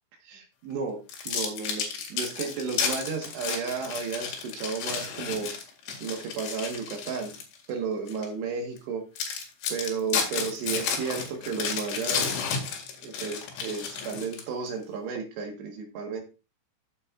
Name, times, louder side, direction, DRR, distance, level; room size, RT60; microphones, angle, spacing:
voice 1, 0.2-5.5 6.0-7.3 7.7-9.0 9.7-12.4 13.0-16.2, right 5 dB, 70° right, 3 dB, 3.5 m, -33 dB
sound 1, 1.1-7.6 8.1-8.3 8.8-8.9 9.2-14.7, left 6 dB, 85° left, 4.4 m, -32 dB
15.0 x 7.5 x 2.5 m, 0.29 s
omnidirectional pair, 5.3 m